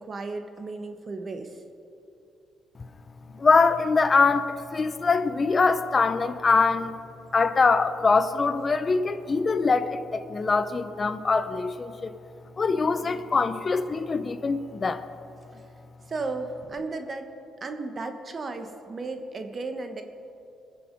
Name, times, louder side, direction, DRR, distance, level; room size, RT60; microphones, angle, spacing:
voice 1, 0.0-1.6 16.1-17.3 17.6-20.0, right 3 dB, 40° right, 7 dB, 1.1 m, -34 dB
voice 2, 3.3-7.0 7.3-12.1 12.6-15.0, left 4 dB, 35° left, 11 dB, 0.6 m, -23 dB
19.5 x 7.0 x 5.1 m, 2.6 s
cardioid pair, 90°, 0 cm